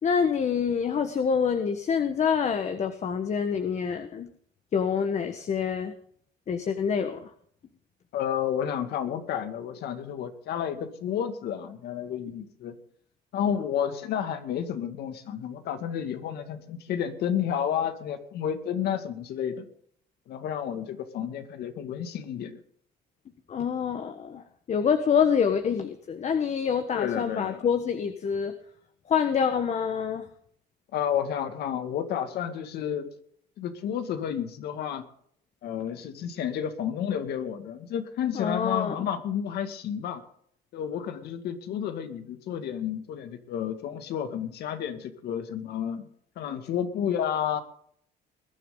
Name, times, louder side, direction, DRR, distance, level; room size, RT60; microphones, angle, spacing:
voice 1, 0.0-4.3 4.7-5.9 6.5-7.3 23.5-24.4 24.7-28.5 29.1-30.3 38.3-39.1, left 7 dB, 45° left, 8 dB, 1.4 m, -26 dB
voice 2, 8.1-12.8 13.3-19.7 20.3-22.6 26.9-27.7 30.9-33.1 33.6-35.1 35.6-40.2 40.7-46.1 46.4-47.6, left 9 dB, 75° left, 8 dB, 2.2 m, -31 dB
21.0 x 11.0 x 3.9 m, 0.63 s
cardioid pair, 110°, 17 cm